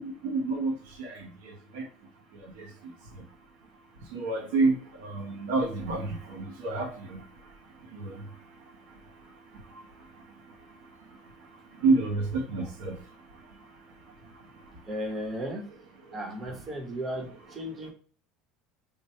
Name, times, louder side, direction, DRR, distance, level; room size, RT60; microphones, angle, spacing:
voice 1, 0.0-1.9 2.4-2.7 4.1-7.2 7.9-8.3 11.8-13.0, right 3 dB, 85° right, 0.8 m, -29 dB
voice 2, 14.9-15.6 16.1-17.9, equal, 25° right, 1.0 m, -35 dB
3.2 x 2.2 x 4.2 m
supercardioid pair, 125°, 0 cm